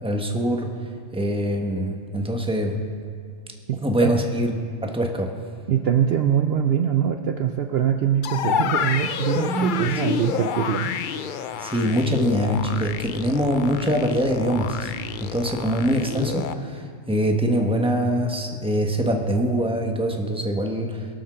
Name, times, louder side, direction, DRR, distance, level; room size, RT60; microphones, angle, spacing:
voice 1, 0.0-0.7 1.1-2.8 3.8-4.6 4.8-5.3 9.3-10.2 11.6-14.9 15.2-21.1, equal, 5° right, 2 dB, 1.1 m, -24 dB
voice 2, 3.7-4.2 5.7-10.9, right 9 dB, 60° right, 6 dB, 0.7 m, -23 dB
sound 1, 8.2-16.5, left 8 dB, 55° left, 0.5 m, -29 dB
21.5 x 7.2 x 6.2 m, 2.2 s
omnidirectional pair, 1.3 m